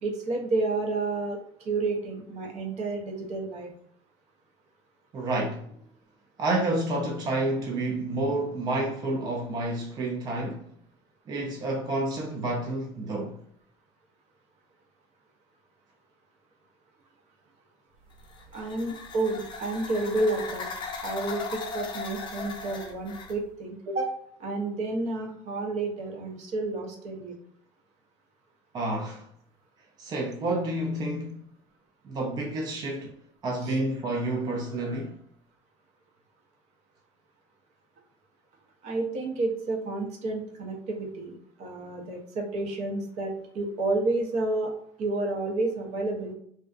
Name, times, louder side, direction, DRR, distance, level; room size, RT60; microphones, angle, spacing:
voice 1, 0.0-3.7 18.5-20.7 21.0-27.3 33.6-33.8 38.8-44.7 45.0-46.3, right 2 dB, 55° right, 0.7 m, -30 dB
voice 2, 5.1-5.7 6.4-10.6 11.3-13.4 28.7-29.3 30.0-31.5 32.0-33.2 33.4-35.2, right 2 dB, 30° right, 0.3 m, -29 dB
sound 1, 18.1-23.4, left 4 dB, 35° left, 0.4 m, -38 dB
2.5 x 2.1 x 2.3 m
cardioid pair, 120°, 14 cm